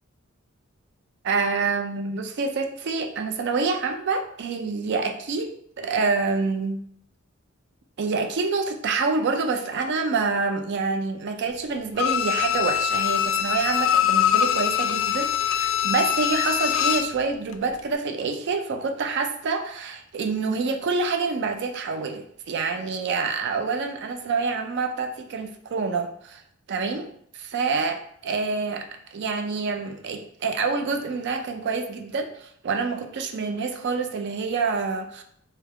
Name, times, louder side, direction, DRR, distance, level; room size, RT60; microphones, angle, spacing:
voice 1, 1.2-6.8 8.0-26.4 26.7-27.1 27.3-35.2, right 4 dB, 55° right, 6 dB, 0.4 m, -27 dB
Bowed string instrument, 12.0-17.2 17.5-17.6, left 10 dB, 65° left, 0.3 m, -23 dB
3.3 x 2.8 x 3.5 m, 0.64 s
head